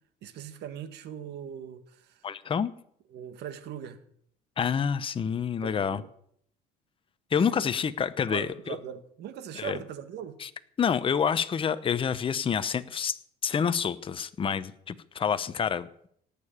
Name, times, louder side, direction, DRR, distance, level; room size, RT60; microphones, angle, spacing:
voice 1, 0.2-2.3 3.1-4.0 5.6-6.1 7.4-7.7 8.3-10.3, right 9 dB, 65° right, 10 dB, 1.8 m, -40 dB
voice 2, 2.2-2.7 4.6-6.0 7.3-8.8 9.5-9.8 10.4-10.5 10.8-13.2 13.4-16.1, left 7 dB, 30° left, 12 dB, 0.8 m, -28 dB
18.0 x 6.8 x 8.7 m, 0.66 s
cardioid pair, 110°, 19 cm